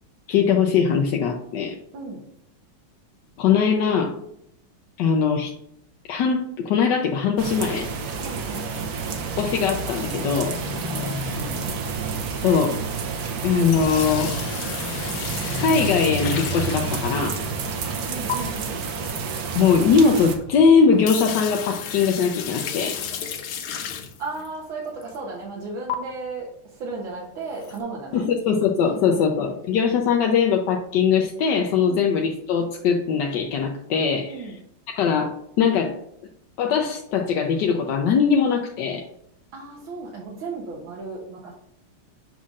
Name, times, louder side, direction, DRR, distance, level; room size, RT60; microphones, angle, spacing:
voice 1, 0.3-1.8 3.4-4.1 5.0-5.5 6.1-7.9 9.4-10.5 12.4-12.7 13.4-14.4 15.6-17.4 19.5-23.0 28.1-34.3 34.9-36.0 36.6-39.1, left 6 dB, 70° left, 1 dB, 1.2 m, -21 dB
voice 2, 1.9-2.3 8.2-8.8 10.9-11.8 17.8-18.9 24.2-28.3 28.8-29.6 31.8-32.1 34.3-34.6 39.5-41.5, right 3 dB, 80° right, -3 dB, 1.8 m, -35 dB
sound 1, 7.4-20.4, right 5 dB, 60° right, 1.1 m, -30 dB
Motorcycle / Traffic noise roadway noise, 8.9-23.0, left 1 dB, 25° left, 1.7 m, -36 dB
sound 2, 13.5-17.4 18.3-18.4 20.4-20.5 20.8-24.5 25.0-25.2 25.9-26.0 27.5-27.8, left 8 dB, 90° left, 1.6 m, -33 dB
7.4 x 5.5 x 2.5 m, 0.74 s
omnidirectional pair, 2.2 m